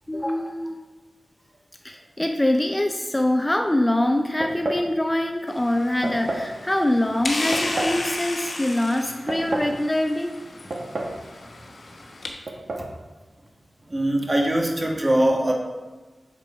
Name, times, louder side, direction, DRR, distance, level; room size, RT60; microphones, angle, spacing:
voice 1, 0.1-0.8 1.8-10.3, left 1 dB, 15° left, 4 dB, 0.4 m, -24 dB
sound 1, 4.4-4.9 6.0-6.5 7.5-8.0 9.0-9.8 10.7-11.2 11.5-11.6 12.5-12.9, right 1 dB, 75° right, 1.0 m, -29 dB
sound 2, 5.5-12.3, left 2 dB, 70° left, 1.0 m, -34 dB
voice 2, 13.9-15.5, right 1 dB, 35° right, 0 dB, 1.5 m, -22 dB
7.4 x 3.9 x 4.8 m, 1.3 s
wide cardioid pair, 65°, 0 cm